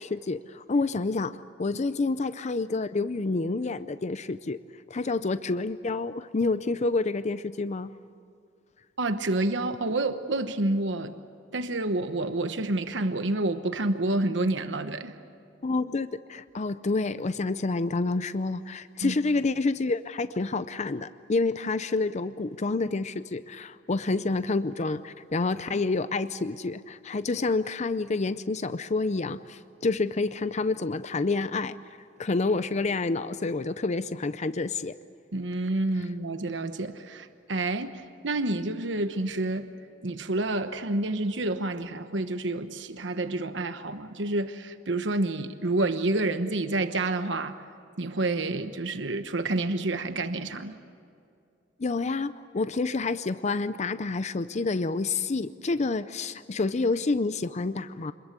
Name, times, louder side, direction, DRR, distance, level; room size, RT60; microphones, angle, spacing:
voice 1, 0.0-4.6 4.9-7.9 15.6-31.8 32.2-34.9 51.8-58.1, left 3 dB, 40° left, 0.5 m, -28 dB
voice 2, 9.0-11.1 11.5-15.1 19.0-19.1 35.3-39.7 40.0-47.6 48.0-50.8, right 2 dB, 70° right, 1.1 m, -29 dB
26.5 x 22.0 x 8.2 m
head